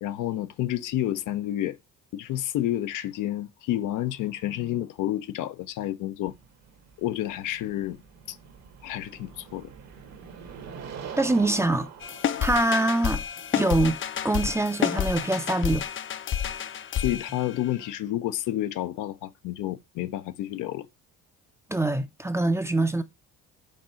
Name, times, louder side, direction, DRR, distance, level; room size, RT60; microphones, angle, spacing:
voice 1, 0.0-1.8 2.1-6.3 7.0-8.0 8.3-8.4 8.8-9.7 17.0-20.9, left 13 dB, 75° left, 0.7 m, -30 dB
sound 1, 6.3-15.1, right 7 dB, 55° right, 1.4 m, -44 dB
voice 2, 11.2-11.9 12.4-13.2 13.5-15.8 21.7-23.0, right 2 dB, 10° right, 0.6 m, -24 dB
sound 2, 12.0-17.9, left 9 dB, 40° left, 0.5 m, -30 dB
5.3 x 3.7 x 5.6 m
cardioid pair, 100°, 31 cm